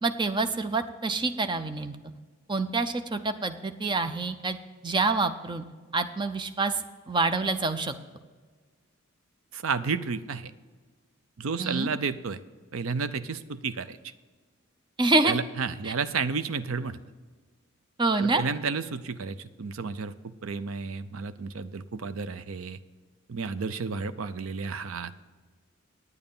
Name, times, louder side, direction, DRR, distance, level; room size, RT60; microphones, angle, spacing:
voice 1, 0.0-2.0 2.5-4.6 4.8-5.6 5.9-6.8 7.1-7.9 11.6-11.9 15.0-15.4 15.8-15.9 18.0-18.4, right 3 dB, 20° right, 9 dB, 0.5 m, -26 dB
voice 2, 9.5-10.5 11.4-12.4 12.7-14.0 15.2-17.0 18.2-22.8 23.3-25.1, right 5 dB, 75° right, 13 dB, 0.5 m, -32 dB
9.6 x 9.0 x 5.4 m, 1.4 s
head